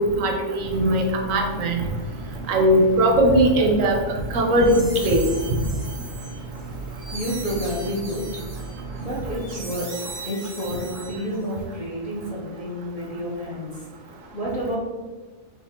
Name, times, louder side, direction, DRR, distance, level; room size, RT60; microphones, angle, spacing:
voice 1, 0.0-1.8 2.5-4.0 4.3-5.3, right 1 dB, 75° right, 2 dB, 1.0 m, -19 dB
sound 1, 0.6-9.8, right 3 dB, 75° left, 1.6 m, -37 dB
sound 2, 4.3-11.5, right 3 dB, 40° right, 0.6 m, -39 dB
voice 2, 7.1-8.4 9.0-14.8, equal, 40° left, -6 dB, 0.6 m, -30 dB
3.4 x 2.4 x 4.2 m, 1.3 s
omnidirectional pair, 1.4 m